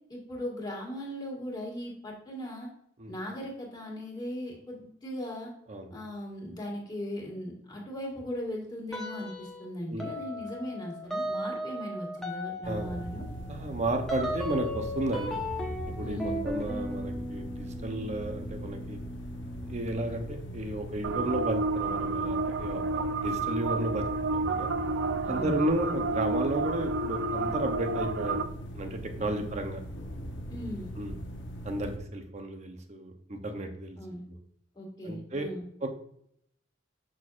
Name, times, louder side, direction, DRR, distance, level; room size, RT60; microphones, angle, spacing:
voice 1, 0.1-2.7 3.1-5.5 5.9-13.2 16.0-16.4 25.2-25.6 29.3-29.5 30.5-30.9 34.0-34.2 34.8-35.6, equal, 25° left, -2 dB, 1.9 m, -38 dB
sound 1, 8.9-9.7 10.0-20.3, equal, ahead, 0.9 m, -37 dB
voice 2, 9.9-10.4 12.6-13.0 13.5-15.4 16.0-19.0 19.6-24.7 25.3-28.4 28.7-29.8 31.0-31.1 31.6-34.0 34.3-34.4 35.0-35.5 35.8-35.9, right 1 dB, 40° right, 5 dB, 0.8 m, -33 dB
sound 2, 12.6-32.0, equal, 75° left, 0.9 m, -40 dB
sound 3, 21.0-28.4, right 3 dB, 70° right, 0.5 m, -30 dB
6.3 x 6.1 x 2.4 m, 0.70 s
head